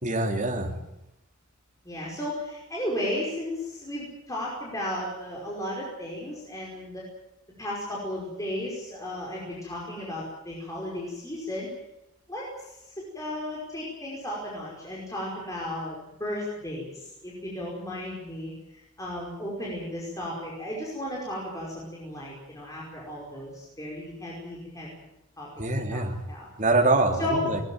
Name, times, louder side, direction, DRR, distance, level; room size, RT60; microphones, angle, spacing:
voice 1, 0.0-0.7 25.6-26.2 26.6-27.6, right 2 dB, 35° right, 2 dB, 3.4 m, -24 dB
voice 2, 1.8-7.1 7.6-11.7 12.3-25.1 25.4-25.5 25.9-26.0 26.3-26.5 27.2-27.5, left 1 dB, 15° left, -4 dB, 5.2 m, -34 dB
20.0 x 20.0 x 9.2 m, 0.86 s
head